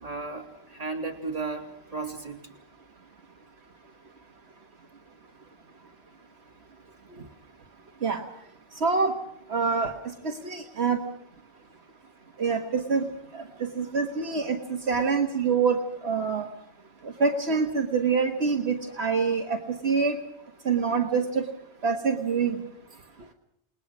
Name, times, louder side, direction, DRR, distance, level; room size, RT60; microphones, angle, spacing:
voice 1, 0.0-2.4, right 3 dB, 35° right, 1 dB, 3.3 m, -34 dB
voice 2, 8.7-9.2 9.5-9.9 10.2-11.0 12.4-16.5 17.0-20.2 20.6-21.4 21.8-22.6, right 5 dB, 70° right, 4 dB, 1.7 m, -26 dB
29.0 x 20.0 x 6.1 m, 0.74 s
omnidirectional pair, 1.1 m